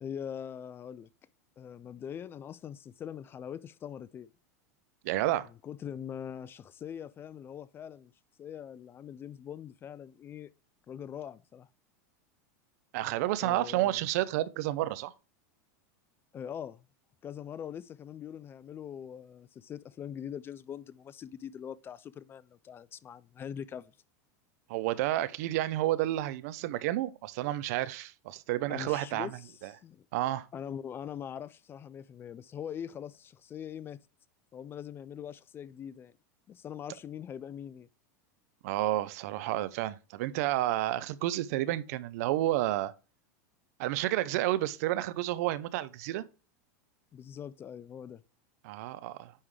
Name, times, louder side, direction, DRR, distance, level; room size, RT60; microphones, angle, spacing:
voice 1, 0.0-1.1 1.6-4.3 5.6-8.1 8.4-10.5 10.9-11.7 13.4-14.0 16.3-16.9 17.2-23.9 28.7-30.0 30.5-34.0 34.5-36.1 36.5-37.9 47.1-48.2, left 8 dB, 25° left, 0.4 m, -42 dB
voice 2, 5.0-5.5 12.9-15.1 24.7-29.3 29.6-29.7 30.1-30.5 38.6-42.9 43.8-46.2 48.6-49.3, right 15 dB, 65° right, 0.6 m, -30 dB
9.7 x 3.6 x 3.2 m
supercardioid pair, 125°, 9 cm